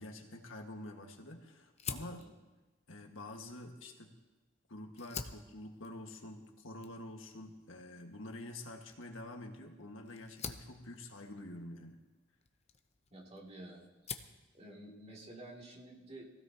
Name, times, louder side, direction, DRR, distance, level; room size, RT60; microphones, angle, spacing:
voice 1, 0.0-2.3 2.9-4.1 4.7-12.0, left 1 dB, 90° left, 3 dB, 1.7 m, -47 dB
Fire, 1.8-4.4 4.8-13.5 13.8-14.4, left 6 dB, 35° left, 0.7 m, -48 dB
voice 2, 13.1-13.9 14.5-16.3, right 1 dB, 35° right, -2 dB, 2.5 m, -51 dB
22.5 x 16.0 x 2.9 m, 1.1 s
head